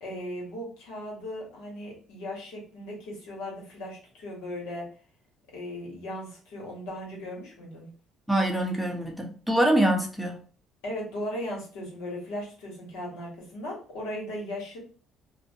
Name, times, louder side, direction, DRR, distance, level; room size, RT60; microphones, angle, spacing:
voice 1, 0.0-4.9 5.5-7.9 10.8-14.8, left 1 dB, 85° left, -3 dB, 1.2 m, -37 dB
voice 2, 8.3-10.4, right 1 dB, ahead, 1 dB, 0.7 m, -24 dB
2.5 x 2.1 x 2.6 m, 0.40 s
supercardioid pair, 80°, 0 cm